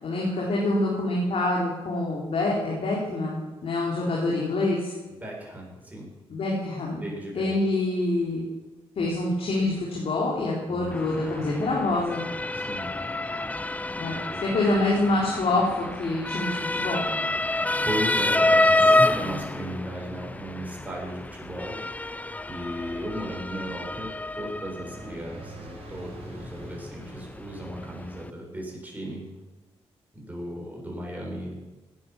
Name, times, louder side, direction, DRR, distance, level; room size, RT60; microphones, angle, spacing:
voice 1, 0.0-4.9 6.3-7.0 7.3-8.4 9.0-12.2 14.0-17.0, left 2 dB, 65° left, -3 dB, 3.9 m, -26 dB
voice 2, 5.2-6.1 7.0-7.5 10.7-11.0 12.5-12.9 14.0-14.4 17.9-22.1 22.5-29.3 30.1-31.6, equal, 15° right, -1 dB, 7.2 m, -36 dB
Motor vehicle (road) / Siren, 10.9-28.3, left 2 dB, 15° left, 0.6 m, -28 dB
sound 1, 24.1-28.8, right 2 dB, 65° right, 5.2 m, -47 dB
15.0 x 10.5 x 7.4 m, 1.2 s
cardioid pair, 65°, 11 cm